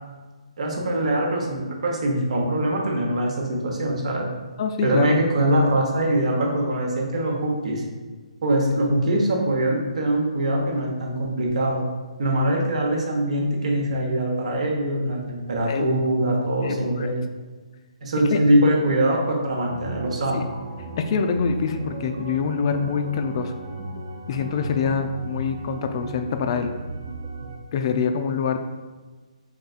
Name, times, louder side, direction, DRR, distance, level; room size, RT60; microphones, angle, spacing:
voice 1, 0.6-4.3 4.8-7.8 8.4-11.8 12.2-17.2 18.0-20.4, right 1 dB, 65° right, 0 dB, 0.9 m, -23 dB
voice 2, 4.6-5.2 15.7-15.9 16.6-17.1 18.3-18.4 21.0-23.5 24.3-26.7 27.7-28.6, left 5 dB, 40° left, 7 dB, 0.3 m, -25 dB
sound 1, 19.6-27.6, right 2 dB, 45° right, 0.5 m, -36 dB
4.0 x 3.7 x 2.4 m, 1.3 s
hypercardioid pair, 145°, 4 cm